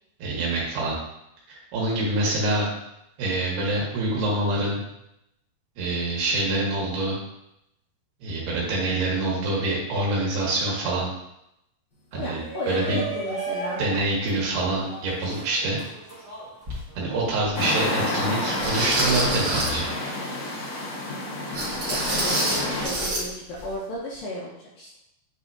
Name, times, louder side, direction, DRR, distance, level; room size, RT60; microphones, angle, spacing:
voice 1, 0.2-1.0 1.7-2.7 3.2-4.8 5.8-7.2 8.2-11.1 12.1-13.0 13.8-15.8 17.0-19.9, right 2 dB, 70° right, -5 dB, 3.6 m, -25 dB
voice 2, 12.1-13.8 21.9-25.0, left 1 dB, 80° left, -4 dB, 2.1 m, -34 dB
Shout, 12.2-17.3, right 3 dB, 35° left, 0.7 m, -36 dB
sound 1, 16.7-16.8 17.5-17.6 18.6-19.9 21.5-23.3 23.5-23.7 24.1-24.2, right 1 dB, 50° right, 2.0 m, -27 dB
sound 2, 17.5-22.9, left 1 dB, 65° left, 1.8 m, -29 dB
9.2 x 4.1 x 2.7 m, 0.82 s
omnidirectional pair, 4.8 m